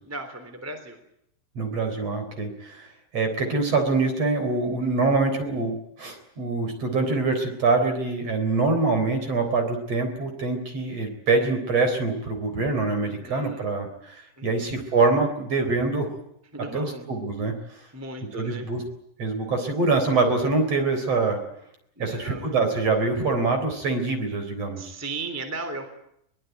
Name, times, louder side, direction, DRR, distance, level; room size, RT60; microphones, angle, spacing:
voice 1, 0.1-1.0 13.0-13.7 14.4-14.8 16.5-17.1 17.6-18.7 22.0-22.5 24.8-25.9, right 2 dB, 5° right, 6 dB, 2.2 m, -37 dB
voice 2, 1.6-2.9 3.1-16.1 16.7-17.5 18.3-18.8 19.2-21.4 22.0-24.8, right 3 dB, 35° right, 6 dB, 4.4 m, -24 dB
22.5 x 22.0 x 9.2 m, 0.75 s
omnidirectional pair, 5.7 m